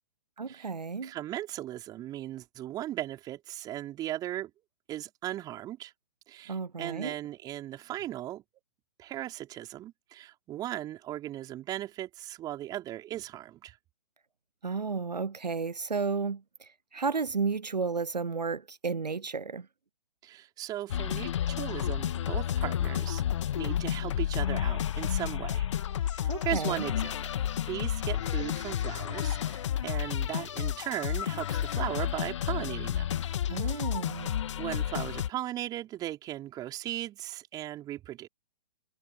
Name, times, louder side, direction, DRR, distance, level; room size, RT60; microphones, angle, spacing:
voice 1, 0.4-1.1 6.5-7.1 14.6-19.7 26.3-26.8 33.5-34.4, right 5 dB, 80° right, 0.9 m, -33 dB
voice 2, 1.0-4.5 4.9-5.9 6.3-8.4 9.0-13.8 20.2-23.3 23.5-25.7 26.1-27.2 27.7-33.2 33.6-33.9 34.6-38.3, right 13 dB, 20° right, 4.1 m, -37 dB
sound 1, 20.9-35.3, left 10 dB, 45° left, 1.8 m, -31 dB
figure-of-eight pair, 130°, 21 cm